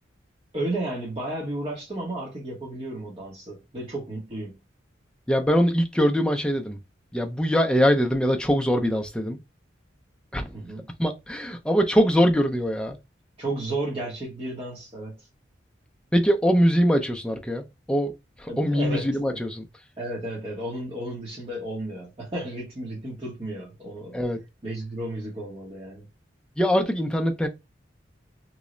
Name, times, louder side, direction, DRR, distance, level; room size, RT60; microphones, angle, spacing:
voice 1, 0.5-4.6 10.5-10.9 13.4-15.3 18.5-19.4 20.0-24.2 24.6-26.1, right 1 dB, 30° right, 0.8 m, -33 dB
voice 2, 5.3-6.8 7.1-9.4 10.3-10.5 11.0-13.0 16.1-18.1 18.4-19.7 24.1-24.4 26.6-27.5, equal, 5° left, 0.4 m, -22 dB
3.0 x 2.0 x 3.7 m
head